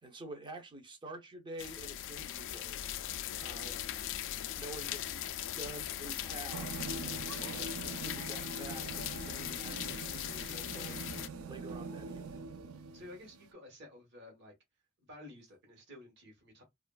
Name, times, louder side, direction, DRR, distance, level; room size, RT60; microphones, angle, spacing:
voice 1, 0.0-2.8 3.4-3.8 4.5-5.3 5.6-6.8 7.4-11.0 11.5-12.4, right 2 dB, 20° right, 0.6 m, -48 dB
sound 1, 1.6-11.3, left 11 dB, 60° left, 0.3 m, -39 dB
sound 2, 6.5-13.5, right 4 dB, 70° right, 0.4 m, -43 dB
voice 2, 12.9-14.5 15.0-16.6, left 1 dB, 50° right, 1.1 m, -52 dB
2.9 x 2.4 x 2.2 m
head